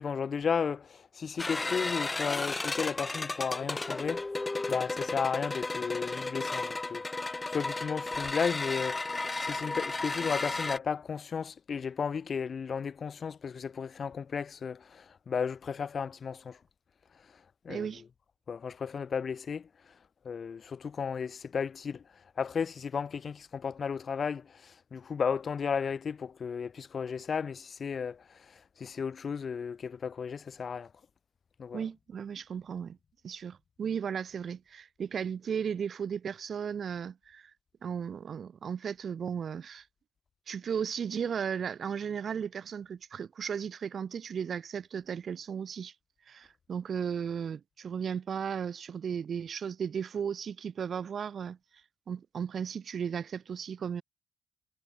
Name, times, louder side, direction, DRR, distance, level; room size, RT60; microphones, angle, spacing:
voice 1, 0.0-4.2 4.7-7.0 7.5-16.6 17.6-17.9 18.5-19.7 20.2-22.0 22.4-28.2 28.8-30.9 31.6-31.8, left 6 dB, 45° left, 4.3 m, -34 dB
sound 1, 1.4-10.8, left 3 dB, 20° left, 0.7 m, -34 dB
voice 2, 17.7-18.0 31.7-33.0 33.2-37.5 37.8-39.9 40.5-45.9 46.3-51.6 52.1-54.0, right 7 dB, 50° right, 1.9 m, -35 dB
cardioid pair, 90°, 0 cm